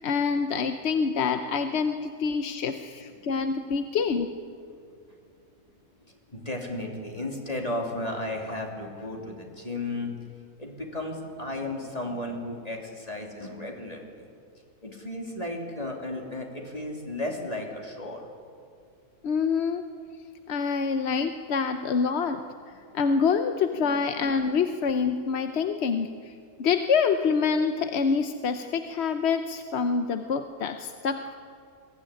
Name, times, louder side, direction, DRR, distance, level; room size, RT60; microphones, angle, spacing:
voice 1, 0.0-4.3 19.2-19.8 20.5-26.3 26.6-31.4, left 5 dB, 50° left, 7 dB, 0.9 m, -26 dB
voice 2, 6.3-10.1 10.6-14.3 14.8-18.3 22.8-23.2 23.7-24.0, left 1 dB, 25° left, 0 dB, 3.0 m, -34 dB
22.5 x 15.5 x 9.9 m, 2.3 s
omnidirectional pair, 1.6 m